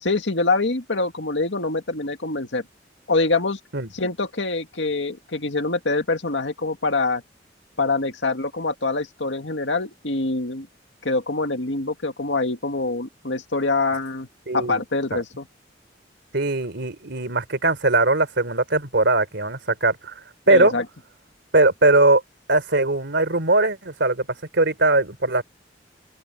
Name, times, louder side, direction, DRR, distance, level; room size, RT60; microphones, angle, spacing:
voice 1, 0.0-2.7 3.1-3.6 3.9-7.2 7.8-10.7 11.0-14.3 14.5-15.5 20.5-20.9, left 3 dB, 75° left, 2.2 m, -25 dB
voice 2, 14.5-14.8 15.1-15.2 16.3-20.1 20.5-20.7 21.5-22.2 22.5-24.3 24.5-25.4, right 2 dB, 70° right, 3.5 m, -20 dB
open air
head